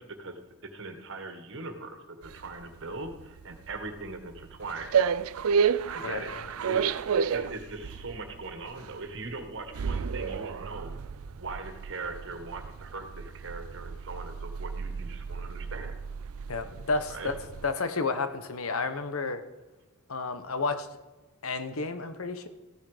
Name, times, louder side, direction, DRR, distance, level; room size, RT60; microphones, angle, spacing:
voice 1, 0.0-5.0 5.4-5.5 5.9-10.9 11.4-15.9 17.1-17.3, right 3 dB, 65° right, 6 dB, 1.6 m, -40 dB
sound 1, 2.2-17.7, right 6 dB, 80° right, 0.4 m, -32 dB
voice 2, 6.0-6.4 16.5-17.3 17.6-19.4 20.1-20.9 21.4-22.5, left 3 dB, 80° left, 10 dB, 1.1 m, -31 dB
14.5 x 9.8 x 5.0 m, 1.1 s
head